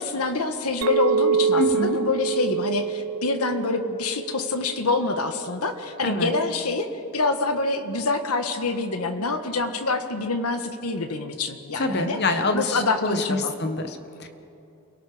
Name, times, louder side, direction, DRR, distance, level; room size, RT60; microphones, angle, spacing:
voice 1, 0.0-6.9 7.1-12.2 12.5-13.5, left 3 dB, 90° left, 7 dB, 1.5 m, -26 dB
Chink clink, 0.8-5.3, right 6 dB, 90° right, 0.6 m, -26 dB
voice 2, 1.6-2.0 6.0-6.3 11.7-14.3, left 2 dB, 50° left, 6 dB, 1.5 m, -26 dB
28.5 x 18.0 x 5.1 m, 2.8 s
head